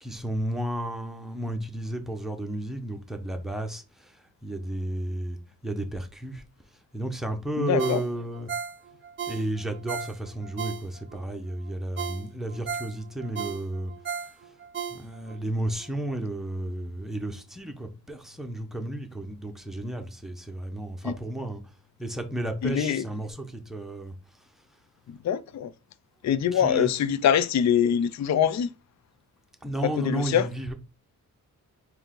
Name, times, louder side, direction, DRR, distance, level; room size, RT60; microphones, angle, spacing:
voice 1, 0.0-5.4 5.6-6.4 6.9-8.5 9.3-13.9 14.2-14.5 14.9-21.7 22.0-24.5 26.5-26.9 29.6-30.7, right 1 dB, ahead, 1.0 m, -33 dB
voice 2, 7.6-8.0 21.0-21.1 22.6-23.0 25.1-25.7 26.2-28.7 30.0-30.5, left 8 dB, 50° left, 0.4 m, -24 dB
Ringtone, 7.8-11.2 11.6-11.7 12.0-15.4 15.8-15.9, right 7 dB, 35° right, 0.5 m, -36 dB
4.4 x 2.8 x 3.8 m
cardioid pair, 65°, 36 cm